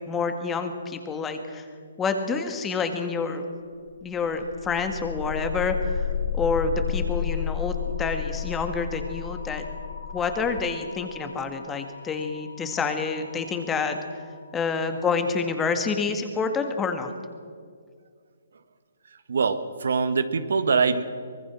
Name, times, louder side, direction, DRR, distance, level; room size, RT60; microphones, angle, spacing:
voice 1, 0.0-1.7 2.0-3.4 4.0-6.0 6.3-9.6 10.1-14.0 14.5-17.1, left 4 dB, 15° left, 7 dB, 2.0 m, -28 dB
sound 1, 4.0-14.0, left 8 dB, 70° left, 2.4 m, -32 dB
voice 2, 19.3-21.0, right 5 dB, 70° right, 11 dB, 1.5 m, -23 dB
24.0 x 20.0 x 6.3 m, 2.1 s
hypercardioid pair, 145°, 0 cm